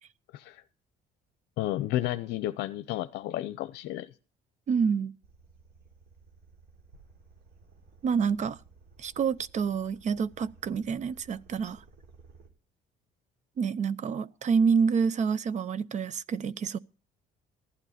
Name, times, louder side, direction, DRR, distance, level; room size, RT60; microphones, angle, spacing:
voice 1, 1.6-4.1, left 14 dB, 80° left, 0.7 m, -32 dB
voice 2, 4.7-5.1 8.0-8.6 9.0-11.8 13.6-16.8, right 6 dB, 45° right, 0.7 m, -27 dB
sound 1, 5.2-12.5, right 4 dB, 75° right, 3.9 m, -57 dB
15.5 x 12.0 x 4.2 m
cardioid pair, 110°, 17 cm